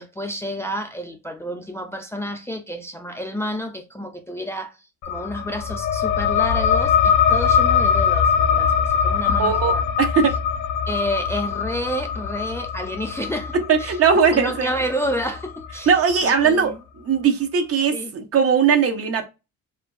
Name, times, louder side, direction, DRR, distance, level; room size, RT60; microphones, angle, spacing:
voice 1, 0.0-9.8 10.9-14.0 14.3-15.9 16.2-16.8 17.9-18.1, equal, 10° left, 0.3 m, -30 dB
sound 1, 5.0-16.2, left 7 dB, 75° left, 0.4 m, -22 dB
voice 2, 9.4-10.4 13.5-14.7 15.9-16.7 17.0-19.3, right 6 dB, 50° right, 0.6 m, -19 dB
2.8 x 2.5 x 2.2 m
cardioid pair, 90°, 30 cm